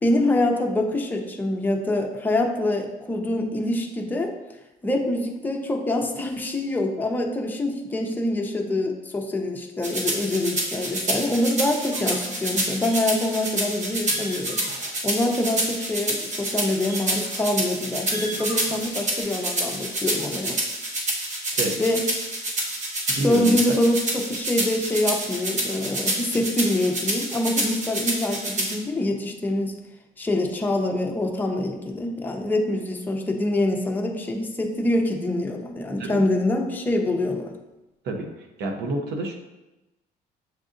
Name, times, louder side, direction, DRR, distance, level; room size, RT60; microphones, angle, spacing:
voice 1, 0.0-4.3 4.8-20.6 21.8-22.1 23.2-29.7 30.2-37.5, left 1 dB, 10° left, 1 dB, 0.6 m, -25 dB
sound 1, 9.8-28.8, right 1 dB, 45° right, 1.1 m, -28 dB
sound 2, 11.9-12.4 12.8-13.6 13.9-15.1 15.5-15.7 16.4-17.5 17.9-19.2, right 1 dB, 25° right, 1.3 m, -41 dB
voice 2, 23.1-23.6 36.0-36.1 38.0-38.3 38.6-39.3, right 2 dB, 80° right, 2 dB, 0.8 m, -27 dB
7.6 x 2.6 x 2.5 m, 1.0 s
cardioid pair, 110°, 17 cm